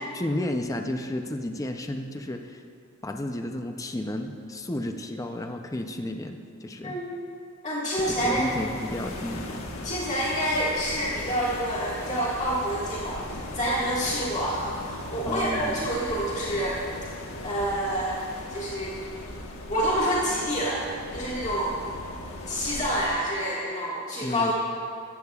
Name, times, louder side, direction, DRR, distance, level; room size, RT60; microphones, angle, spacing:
voice 1, 0.1-2.6 3.0-7.0 8.1-9.6 15.3-15.9 24.2-24.5, left 1 dB, 15° left, 4 dB, 0.5 m, -32 dB
voice 2, 7.6-8.4 9.8-16.8 17.4-18.2 18.5-18.9 19.3-19.4 19.7-20.8 21.1-21.8 22.5-24.5, equal, 35° left, -7 dB, 1.7 m, -28 dB
sound 1, 8.0-23.1, left 1 dB, 85° left, 1.3 m, -38 dB
16.5 x 13.5 x 2.4 m, 2.4 s
head